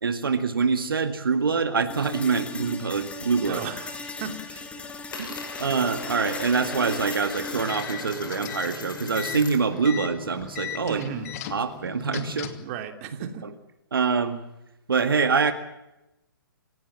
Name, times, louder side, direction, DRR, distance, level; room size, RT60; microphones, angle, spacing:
voice 1, 0.0-3.6 5.2-11.1 11.5-12.5 13.9-14.4 14.9-15.5, right 5 dB, 70° right, 8 dB, 2.0 m, -25 dB
sound 1, 1.9-9.9, left 3 dB, 10° left, 2.5 m, -38 dB
Coin (dropping), 2.3-3.4 3.7-4.2 4.5-9.8 10.1-11.8, left 4 dB, 65° left, 7.1 m, -40 dB
voice 2, 3.5-4.7 10.9-11.3 12.6-13.5, right 7 dB, 35° right, 6 dB, 2.9 m, -35 dB
sound 2, 7.5-12.7, left 9 dB, 40° left, 2.7 m, -38 dB
28.0 x 16.5 x 7.5 m, 0.91 s
figure-of-eight pair, 125°, 12 cm